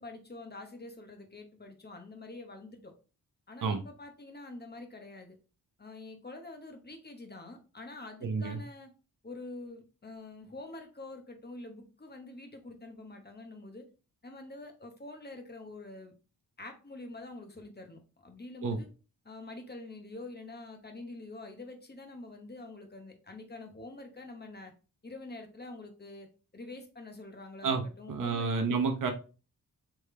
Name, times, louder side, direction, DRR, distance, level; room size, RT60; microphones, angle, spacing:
voice 1, 0.0-2.9 3.5-5.4 5.8-8.9 9.2-13.9 14.2-16.1 16.6-18.9 19.2-24.7 25.0-26.3 26.5-28.5, left 2 dB, 25° left, 5 dB, 1.0 m, -46 dB
voice 2, 8.2-8.6 18.6-18.8 27.6-27.8 28.1-29.1, right 5 dB, 60° right, 4 dB, 0.8 m, -30 dB
3.5 x 3.2 x 3.2 m, 0.34 s
cardioid pair, 70°, 36 cm